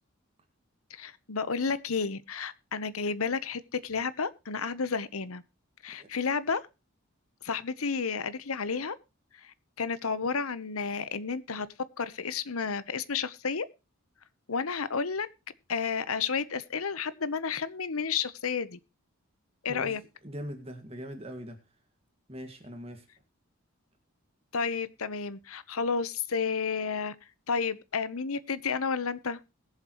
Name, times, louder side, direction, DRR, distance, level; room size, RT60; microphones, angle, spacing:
voice 1, 0.9-5.4 5.8-6.7 7.4-9.0 9.4-11.7 12.0-13.6 14.5-15.3 15.7-18.8 19.6-20.0 24.5-27.1 27.5-29.4, left 5 dB, 85° left, 1.0 m, -31 dB
voice 2, 20.2-21.6 22.3-23.1, equal, 25° right, 2.0 m, -41 dB
21.0 x 7.4 x 3.1 m
head